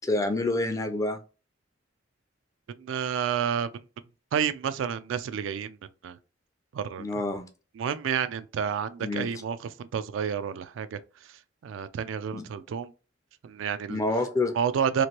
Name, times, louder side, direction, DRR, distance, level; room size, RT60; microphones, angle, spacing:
voice 1, 0.0-1.2 7.0-7.5 9.0-9.3 12.3-12.4 13.9-14.5, left 2 dB, 15° left, 0.4 m, -28 dB
voice 2, 2.8-3.8 4.3-5.8 6.0-6.2 6.7-7.1 7.8-11.0 11.6-12.9 13.4-14.0 14.6-15.1, right 7 dB, 75° right, 0.3 m, -30 dB
3.0 x 2.5 x 2.9 m
head